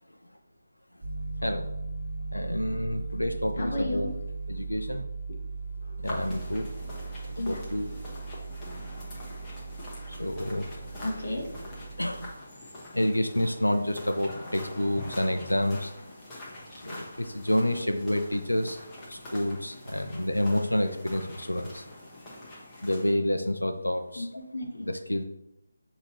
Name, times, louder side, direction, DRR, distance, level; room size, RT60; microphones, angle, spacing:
Piano, 1.0-12.3, right 3 dB, 30° right, 1.2 m, -38 dB
voice 1, 2.3-4.1 4.5-5.0 6.0-6.7 7.2-7.9 10.1-10.7 12.0-12.3 12.9-15.9 16.7-18.8 19.1-21.8 22.8-24.3 24.8-25.2, left 1 dB, 80° left, 6 dB, 0.4 m, -29 dB
voice 2, 3.6-4.1 5.8-6.1 7.4-7.6 10.5-10.6 11.0-11.7 24.2-24.9, left 1 dB, 45° left, -1 dB, 0.8 m, -33 dB
sound 1, 6.0-23.1, left 1 dB, 15° left, 0.9 m, -44 dB
6.5 x 2.8 x 2.7 m, 0.85 s
figure-of-eight pair, 155°, 0 cm